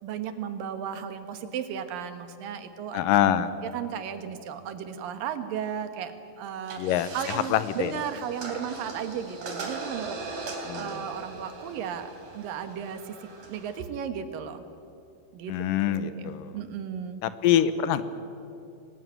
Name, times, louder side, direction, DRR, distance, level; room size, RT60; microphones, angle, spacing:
voice 1, 0.0-3.0 3.7-6.8 7.1-14.7 15.3-15.5 15.9-17.2, right 8 dB, 85° right, 9 dB, 3.1 m, -35 dB
voice 2, 2.9-3.5 6.8-8.0 10.6-11.0 15.5-16.6 17.2-18.0, left 10 dB, 80° left, 13 dB, 2.6 m, -25 dB
sound 1, 6.6-13.8, right 3 dB, 65° right, 4.8 m, -40 dB
23.0 x 19.0 x 9.2 m, 2.7 s
omnidirectional pair, 3.9 m